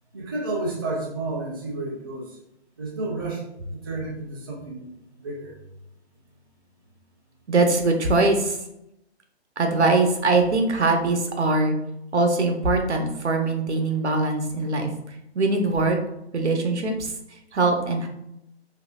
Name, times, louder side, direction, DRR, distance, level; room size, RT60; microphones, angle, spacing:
voice 1, 0.1-2.4 2.8-3.4 3.7-4.9 5.2-5.5, right 2 dB, 20° right, -2 dB, 0.4 m, -31 dB
voice 2, 7.5-8.6 9.6-11.8 12.1-14.9 15.3-16.0 16.3-17.1 17.5-18.1, right 3 dB, 85° right, 4 dB, 0.9 m, -22 dB
3.9 x 2.7 x 2.4 m, 0.81 s
hypercardioid pair, 145°, 33 cm